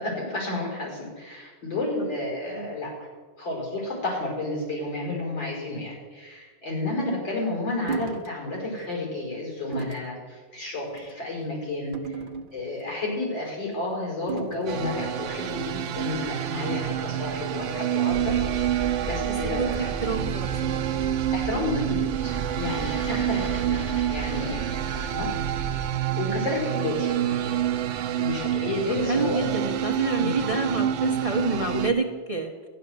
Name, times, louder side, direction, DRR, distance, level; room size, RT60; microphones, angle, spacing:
voice 1, 0.0-2.9 3.4-12.1 12.5-18.7 19.0-19.9 21.3-23.4 23.7-23.8 24.1-25.7 26.2-27.1 28.2-29.4 30.2-30.3, left 2 dB, 85° left, -1 dB, 5.8 m, -31 dB
sound 1, 7.9-8.3 8.8-9.0 9.7-10.1 10.9-11.2 11.9-12.8 14.3-14.8, right 5 dB, 45° right, 0.7 m, -34 dB
sound 2, 14.7-31.9, right 11 dB, 85° right, 0.6 m, -28 dB
sound 3, 18.1-25.9, right 3 dB, 15° left, 3.0 m, -35 dB
voice 2, 19.2-20.9 23.1-23.7 26.3-26.4 29.0-32.7, right 3 dB, 25° right, 3 dB, 1.0 m, -29 dB
13.0 x 10.5 x 7.9 m, 1.4 s
omnidirectional pair, 2.0 m